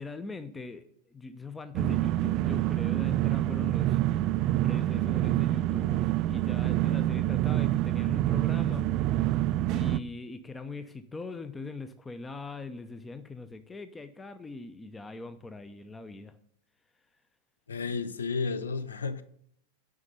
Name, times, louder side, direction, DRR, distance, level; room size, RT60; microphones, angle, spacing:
voice 1, 0.0-4.0 4.6-8.9 9.7-16.3, left 3 dB, 10° left, 0.6 m, -41 dB
sound 1, 1.7-10.0, right 15 dB, 40° right, 0.3 m, -26 dB
voice 2, 17.7-19.2, left 4 dB, 70° left, 0.7 m, -32 dB
9.6 x 5.2 x 6.7 m
figure-of-eight pair, 90°, 0 cm